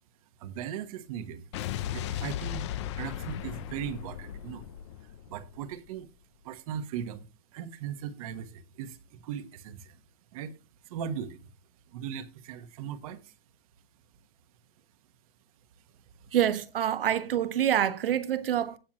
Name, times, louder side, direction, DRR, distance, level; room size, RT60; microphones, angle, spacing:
voice 1, 0.4-1.4 1.9-4.7 5.0-6.1 6.4-10.0 10.3-10.6 10.8-11.5 11.9-13.3 16.2-16.3, right 8 dB, 35° right, 1.3 m, -38 dB
Explosion, 1.5-5.9, left 11 dB, 30° left, 0.6 m, -36 dB
voice 2, 16.3-18.8, right 10 dB, 65° right, 1.3 m, -26 dB
16.5 x 6.1 x 3.0 m
hypercardioid pair, 155°, 30 cm